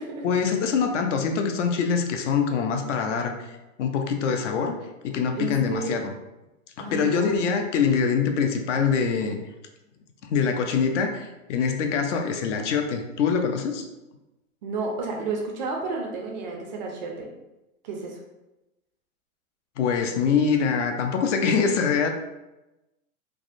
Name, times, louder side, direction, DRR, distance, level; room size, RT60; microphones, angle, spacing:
voice 1, 0.2-4.8 5.0-6.1 6.8-9.4 10.2-13.9 19.8-22.1, left 6 dB, 60° left, 5 dB, 0.5 m, -24 dB
voice 2, 5.3-5.9 6.8-7.3 14.6-17.3 17.8-18.2, right 3 dB, 35° right, 0 dB, 0.4 m, -31 dB
3.4 x 2.0 x 2.5 m, 1.0 s
hypercardioid pair, 125°, 42 cm